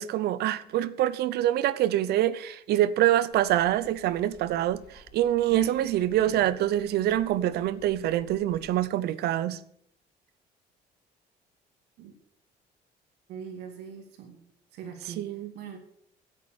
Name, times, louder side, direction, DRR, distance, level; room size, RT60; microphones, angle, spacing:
voice 1, 0.0-9.6 15.2-15.5, right 13 dB, 75° right, 0.7 m, -25 dB
sound 1, 3.3-8.8, left 5 dB, 80° left, 2.8 m, -50 dB
voice 2, 13.3-14.4 14.7-15.2 15.5-15.8, right 7 dB, 90° right, 2.4 m, -42 dB
10.5 x 8.3 x 7.0 m
cardioid pair, 110°, 17 cm